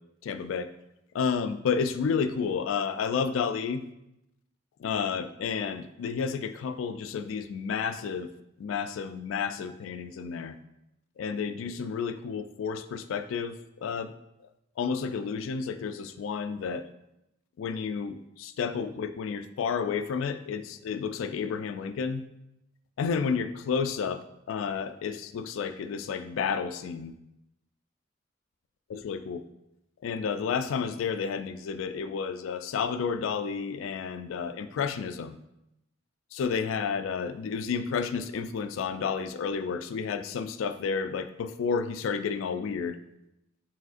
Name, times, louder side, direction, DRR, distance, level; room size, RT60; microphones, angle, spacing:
voice 1, 0.2-0.7 1.1-3.8 4.8-8.3 8.6-10.5 11.2-14.1 14.8-16.9 17.6-22.2 23.0-27.1 29.0-29.4 30.0-35.4 36.3-43.0, left 6 dB, 75° left, 11 dB, 0.3 m, -31 dB
4.8 x 3.5 x 2.4 m, 0.85 s
head